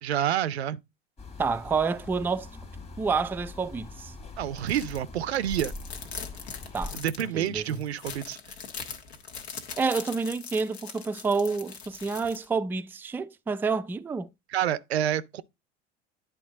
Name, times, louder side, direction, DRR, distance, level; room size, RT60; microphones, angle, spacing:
voice 1, 0.0-0.8 4.4-5.7 6.9-8.4 14.5-15.4, right 11 dB, 80° right, 0.5 m, -28 dB
sound 1, 1.2-6.9, left 3 dB, 20° left, 1.6 m, -42 dB
voice 2, 1.4-2.5 3.0-4.1 6.7-7.0 7.3-7.8 9.8-14.3, right 4 dB, 5° right, 0.3 m, -28 dB
sound 2, 4.6-5.0 5.3-12.4, left 6 dB, 75° left, 1.5 m, -41 dB
10.0 x 4.4 x 3.7 m
figure-of-eight pair, 70°, 32 cm